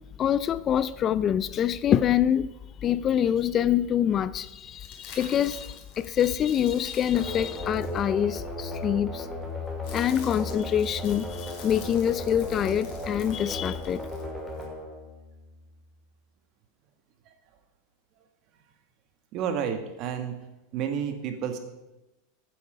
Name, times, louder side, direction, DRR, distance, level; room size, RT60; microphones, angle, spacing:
voice 1, 0.2-2.5 2.8-9.3 9.9-14.1, left 9 dB, 30° left, 0.4 m, -25 dB
sound 1, 4.8-8.5 9.4-14.7, left 5 dB, 50° left, 3.7 m, -48 dB
sound 2, 7.1-15.8, left 1 dB, 5° left, 2.4 m, -36 dB
voice 2, 19.3-20.4 20.7-21.6, right 8 dB, 45° right, 1.8 m, -30 dB
15.0 x 8.4 x 5.1 m
supercardioid pair, 130°, 0 cm